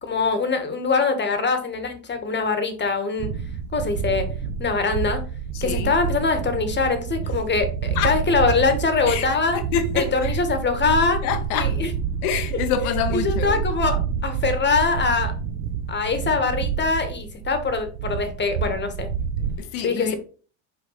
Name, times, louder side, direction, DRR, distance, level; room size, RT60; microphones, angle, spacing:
voice 1, 0.0-3.3 3.7-4.3 4.6-5.3 5.6-9.6 9.9-11.2 11.5-11.9 13.2-15.3 15.9-19.1 19.8-20.1, left 4 dB, 25° left, 1.6 m, -23 dB
sound 1, 3.2-19.6, right 7 dB, 80° right, 0.9 m, -28 dB
voice 2, 5.5-6.0 7.9-8.2 9.1-9.3 9.5-10.4 11.2-11.7 12.2-13.6 19.6-20.1, left 8 dB, 80° left, 1.2 m, -27 dB
5.5 x 4.5 x 4.0 m
supercardioid pair, 105°, 43 cm